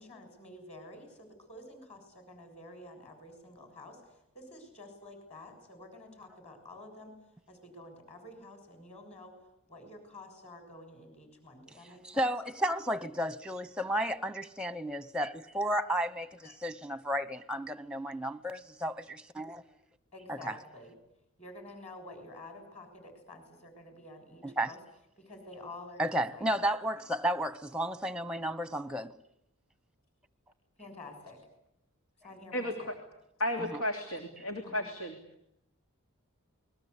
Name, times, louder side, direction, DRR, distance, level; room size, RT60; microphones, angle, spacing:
voice 1, 0.0-7.1 7.5-9.4 9.7-12.3 16.4-16.6 20.1-20.9 21.4-24.8 25.2-26.5 30.8-31.4 32.2-32.9 34.6-34.9, left 2 dB, 30° left, 7.1 m, -49 dB
voice 2, 12.0-19.6 20.3-20.6 24.4-24.7 26.0-29.1 33.6-33.8, equal, 5° right, 0.9 m, -33 dB
voice 3, 33.4-35.2, left 1 dB, 90° left, 3.0 m, -33 dB
28.5 x 21.0 x 8.4 m
head